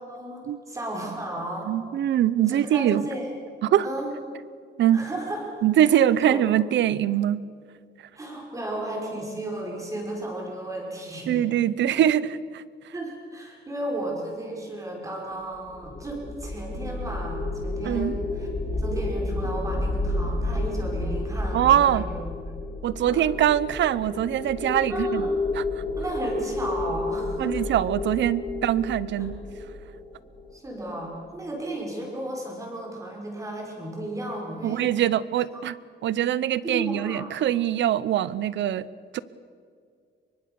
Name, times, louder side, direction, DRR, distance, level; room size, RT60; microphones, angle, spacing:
voice 1, 0.1-1.7 2.5-3.3 3.8-4.1 4.9-5.4 5.9-6.4 8.1-11.5 12.9-22.5 23.1-23.2 24.9-25.3 26.0-27.6 30.5-34.9 36.6-37.3, right 1 dB, 15° right, -1 dB, 5.7 m, -34 dB
voice 2, 1.7-3.0 3.6-3.9 4.8-5.0 5.6-7.4 11.3-12.6 17.8-18.2 21.5-22.0 22.8-25.3 25.6-25.7 27.4-29.4 34.6-35.7 36.0-38.8 39.1-39.2, right 11 dB, 75° right, 18 dB, 0.9 m, -23 dB
sound 1, 15.5-30.7, left 2 dB, 20° left, 3.6 m, -30 dB
25.5 x 23.5 x 7.0 m, 2.2 s
wide cardioid pair, 180°, 19 cm